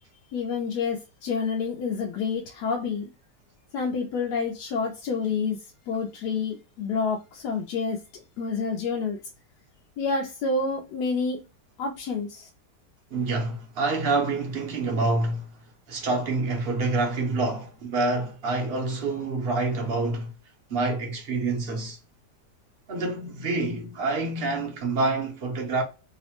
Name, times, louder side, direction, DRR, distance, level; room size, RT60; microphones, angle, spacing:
voice 1, 0.3-3.1 3.7-9.2 10.0-11.4 11.8-12.5, left 4 dB, 75° left, 1.1 m, -28 dB
voice 2, 13.1-15.5 15.9-20.3 20.7-22.0 22.9-25.8, right 3 dB, 55° right, 0.6 m, -27 dB
3.1 x 2.1 x 2.8 m
omnidirectional pair, 1.8 m